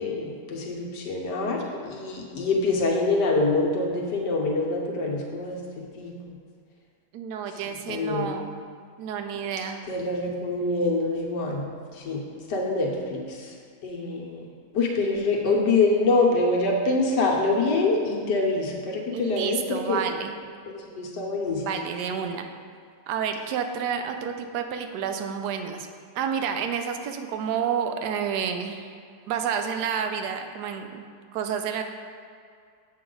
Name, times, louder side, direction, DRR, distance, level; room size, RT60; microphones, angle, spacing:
voice 1, 0.0-6.1 7.9-8.3 9.9-11.7 11.9-12.2 12.5-13.5 13.8-14.5 14.7-20.0 20.7-21.8, left 3 dB, 75° left, -1 dB, 1.6 m, -25 dB
voice 2, 7.1-8.6 9.0-9.8 19.1-20.4 21.6-22.5 23.1-25.9 26.1-28.9 29.3-31.1 31.3-31.8, right 7 dB, 80° right, 6 dB, 1.2 m, -29 dB
7.6 x 6.9 x 3.8 m, 2.2 s
omnidirectional pair, 1.9 m